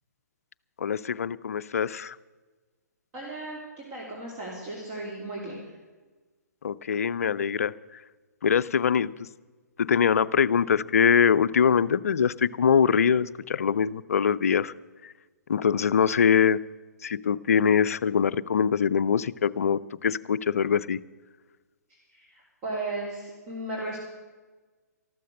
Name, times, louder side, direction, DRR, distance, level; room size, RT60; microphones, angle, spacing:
voice 1, 0.8-2.2 6.6-7.7 8.4-9.3 9.8-14.7 15.5-16.6 17.0-21.0, left 7 dB, 55° left, 16 dB, 0.5 m, -23 dB
voice 2, 3.1-5.6 22.1-24.0, right 2 dB, 30° right, -3 dB, 3.0 m, -35 dB
13.5 x 13.0 x 6.5 m, 1.3 s
figure-of-eight pair, 120°, 9 cm